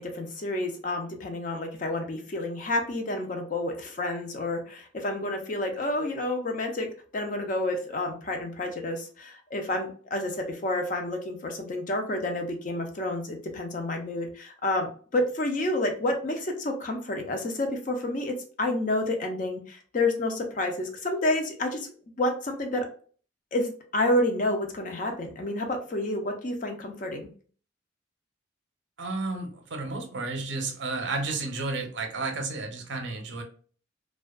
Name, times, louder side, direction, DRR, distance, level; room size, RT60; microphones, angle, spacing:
voice 1, 0.0-6.9 7.1-21.9 22.2-22.9 23.5-27.3, left 1 dB, 40° left, 4 dB, 0.4 m, -29 dB
voice 2, 29.0-33.4, right 3 dB, 65° right, 4 dB, 0.5 m, -32 dB
2.5 x 2.2 x 2.2 m, 0.43 s
head